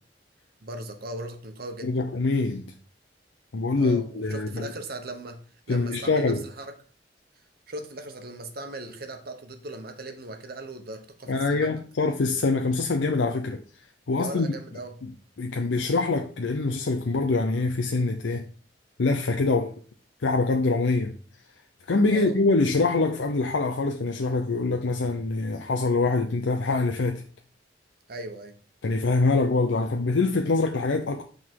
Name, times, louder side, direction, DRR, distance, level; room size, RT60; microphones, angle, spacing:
voice 1, 0.6-1.9 3.8-5.4 5.7-6.7 7.7-11.7 14.2-15.0 22.1-22.4 28.1-28.6, right 1 dB, 55° right, 1.1 m, -38 dB
voice 2, 1.8-2.6 3.5-4.7 5.7-6.4 11.3-13.6 14.1-14.5 15.4-18.5 19.0-19.8 20.2-21.1 21.9-27.2 28.8-31.3, left 3 dB, 80° left, 0.6 m, -24 dB
8.0 x 3.9 x 4.6 m
head